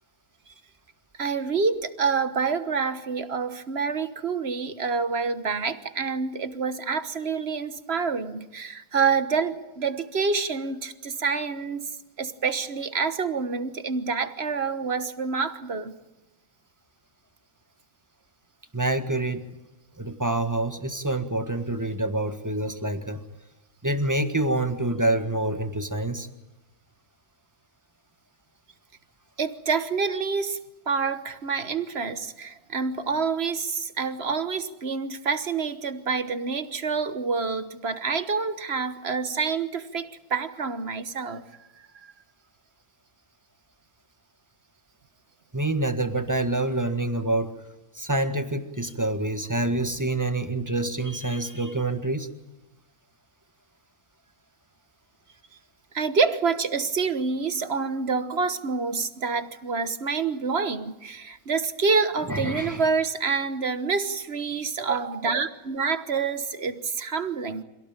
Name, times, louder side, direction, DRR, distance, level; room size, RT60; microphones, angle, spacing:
voice 1, 1.2-11.9 12.2-16.0 29.4-30.6 30.9-41.5 42.0-42.1 55.9-67.6, right 5 dB, 45° right, 1.4 m, -27 dB
voice 2, 18.7-19.5 20.0-23.2 23.8-26.3 45.5-47.5 47.9-52.3 62.3-62.8, right 2 dB, 10° right, 1.6 m, -27 dB
26.5 x 17.5 x 9.0 m
omnidirectional pair, 1.6 m